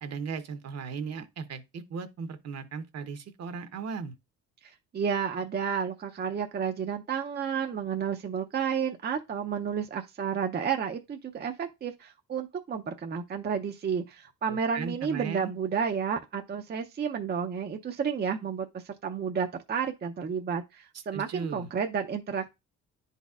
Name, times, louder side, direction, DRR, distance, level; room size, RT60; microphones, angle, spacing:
voice 1, 0.0-4.1 14.5-15.5 21.1-21.7, right 5 dB, 55° right, 0.9 m, -37 dB
voice 2, 4.6-22.5, right 7 dB, 35° right, 0.6 m, -31 dB
10.0 x 4.1 x 2.4 m
cardioid pair, 90°, 30 cm